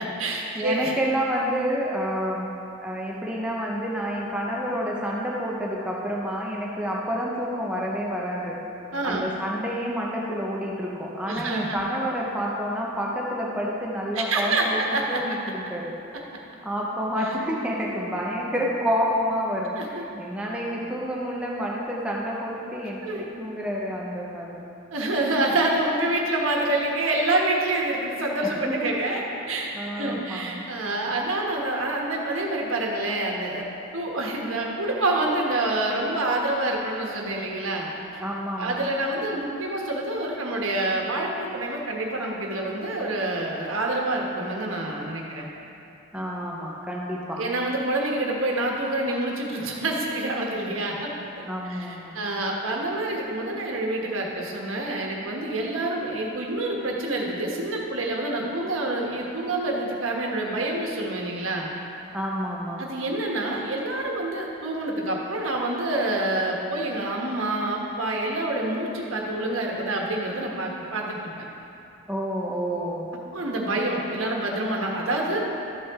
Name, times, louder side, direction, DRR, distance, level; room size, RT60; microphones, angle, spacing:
voice 1, 0.0-0.9 8.9-9.3 11.2-11.8 14.1-15.2 16.1-16.2 17.2-17.3 19.8-20.0 23.0-23.2 24.9-29.7 30.0-38.2 38.6-45.5 47.4-51.4 51.7-61.7 62.8-71.3 73.3-75.4, right 2 dB, 85° right, -1 dB, 1.3 m, -27 dB
voice 2, 0.5-2.5 2.8-8.6 9.0-14.8 15.1-15.9 16.6-24.6 28.4-28.9 29.7-30.7 38.2-38.8 46.1-47.4 51.5-52.2 62.1-62.8 72.1-73.0, equal, 5° right, -4 dB, 0.8 m, -29 dB
13.0 x 5.8 x 3.6 m, 2.7 s
head